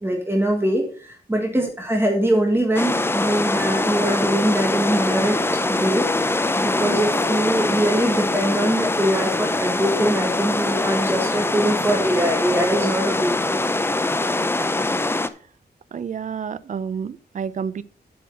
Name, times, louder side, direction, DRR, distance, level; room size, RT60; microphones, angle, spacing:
voice 1, 0.0-5.4 5.7-13.7, right 1 dB, 15° right, 1.6 m, -23 dB
sound 1, 2.8-15.3, left 2 dB, 15° left, 0.5 m, -23 dB
sound 2, 3.9-4.0 4.3-5.6 5.8-6.7 7.0-9.1 9.5-9.7 10.4-10.6 11.7-11.8 12.1-12.2, left 5 dB, 40° left, 1.2 m, -38 dB
voice 2, 15.9-17.8, right 7 dB, 45° right, 0.5 m, -30 dB
8.6 x 5.5 x 5.4 m
wide cardioid pair, 150°, 17 cm